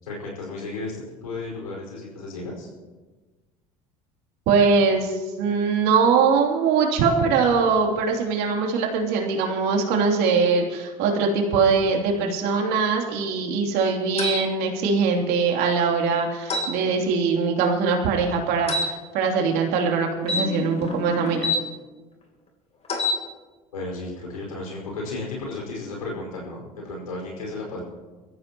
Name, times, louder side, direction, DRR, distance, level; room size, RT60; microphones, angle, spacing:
voice 1, 0.0-2.7 23.7-27.8, left 2 dB, 90° left, -2 dB, 5.2 m, -34 dB
voice 2, 4.5-21.5, right 5 dB, 65° right, 1 dB, 3.1 m, -22 dB
sound 1, 14.2-14.4 16.5-16.7 18.7-18.9 20.2-21.6 22.8-23.2, left 2 dB, 35° left, 3.3 m, -26 dB
24.0 x 14.0 x 3.0 m, 1.3 s
hypercardioid pair, 70°, 18 cm